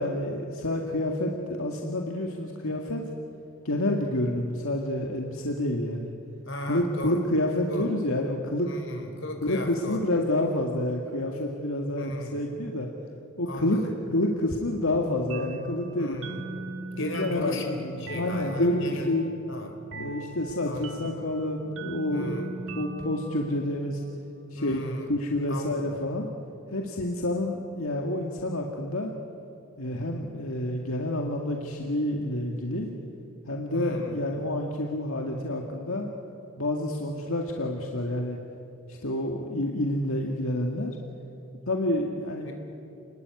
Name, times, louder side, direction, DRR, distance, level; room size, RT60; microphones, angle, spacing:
voice 1, 0.0-3.0 3.6-6.1 6.7-8.7 9.4-12.9 13.4-13.8 14.1-16.2 17.0-17.8 18.1-19.3 19.9-24.0 24.5-24.8 25.1-26.3 26.7-29.1 29.8-32.9 33.5-36.1 36.6-38.4 38.9-41.0 41.7-42.5, left 1 dB, 80° left, 1 dB, 2.1 m, -28 dB
voice 2, 6.4-7.2 7.7-7.9 8.7-10.1 12.0-12.4 13.5-13.9 16.0-16.4 16.9-19.1 19.5-19.8 20.7-21.1 22.1-22.6 24.5-25.1 25.5-26.0 33.7-34.2 42.4-42.5, left 1 dB, 60° left, 4 dB, 4.2 m, -36 dB
sound 1, 15.3-24.7, right 2 dB, 65° right, 1.7 m, -41 dB
29.5 x 20.5 x 9.7 m, 2.8 s
head